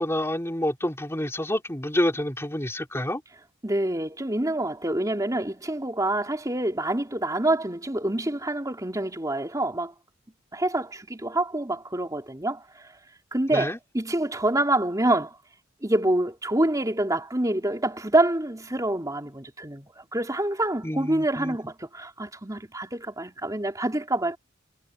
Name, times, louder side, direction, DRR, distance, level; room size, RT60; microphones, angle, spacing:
voice 1, 0.0-3.2 13.5-13.8 20.8-21.6, left 1 dB, 15° left, 3.4 m, -28 dB
voice 2, 3.6-9.9 10.5-12.9 13.3-15.4 15.8-24.4, right 1 dB, 15° right, 3.8 m, -26 dB
head